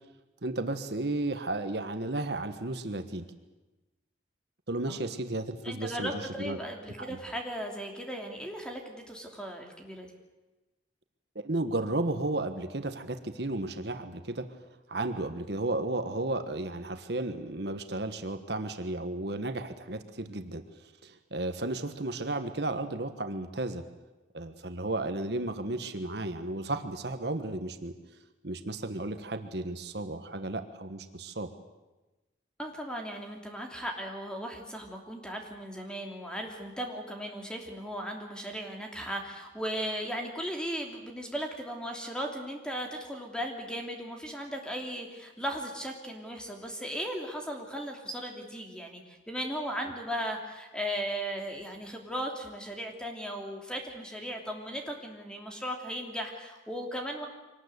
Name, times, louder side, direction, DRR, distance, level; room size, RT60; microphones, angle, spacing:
voice 1, 0.4-3.2 4.7-6.6 7.0-7.2 11.4-14.6 14.9-20.6 21.0-23.8 24.3-28.0 28.4-31.5, right 2 dB, 60° right, 8 dB, 1.4 m, -33 dB
voice 2, 5.6-10.1 32.6-57.3, equal, 5° left, 2 dB, 3.0 m, -37 dB
24.5 x 19.0 x 8.2 m, 1.1 s
head